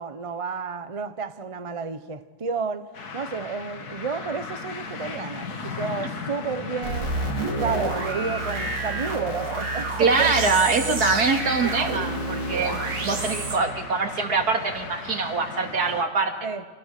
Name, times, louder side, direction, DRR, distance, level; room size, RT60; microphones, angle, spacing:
voice 1, 0.0-10.3 10.7-10.9 11.6-11.7 13.0-13.3 16.4-16.6, right 5 dB, 35° right, 0.5 m, -31 dB
sound 1, 2.9-16.0, left 4 dB, 60° left, 2.1 m, -37 dB
sound 2, 6.8-13.6, right 2 dB, 80° right, 3.3 m, -29 dB
voice 2, 10.0-16.4, right 4 dB, 60° right, 2.6 m, -24 dB
30.0 x 27.5 x 6.7 m
omnidirectional pair, 1.9 m